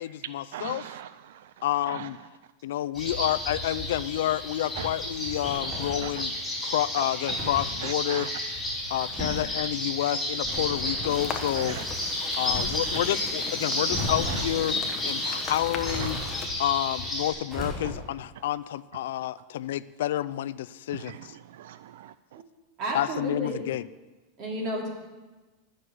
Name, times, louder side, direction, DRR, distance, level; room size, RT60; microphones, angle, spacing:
voice 1, 0.0-0.8 1.6-2.2 2.6-6.4 6.6-8.3 8.9-11.8 12.4-14.8 15.1-16.2 16.6-21.4 22.9-23.8, left 13 dB, 80° left, 16 dB, 0.4 m, -29 dB
voice 2, 0.5-1.5 1.9-2.1 4.8-4.9 6.0-6.2 7.8-8.3 11.6-11.8 14.3-14.4 20.9-22.4, right 11 dB, 75° right, 14 dB, 0.4 m, -40 dB
sound 1, 2.9-17.3, left 1 dB, 5° left, 4.7 m, -32 dB
sound 2, 5.4-6.1 7.3-7.7 8.9-9.5 10.4-11.3 12.5-13.0 13.9-14.6 15.9-16.6 17.5-18.2, left 1 dB, 15° right, 5.2 m, -35 dB
sound 3, 11.1-16.5, left 6 dB, 20° left, 1.0 m, -39 dB
voice 3, 22.8-23.6 24.4-24.9, right 1 dB, 40° right, -1 dB, 3.2 m, -32 dB
12.0 x 6.3 x 9.3 m, 1.2 s
supercardioid pair, 160°, 0 cm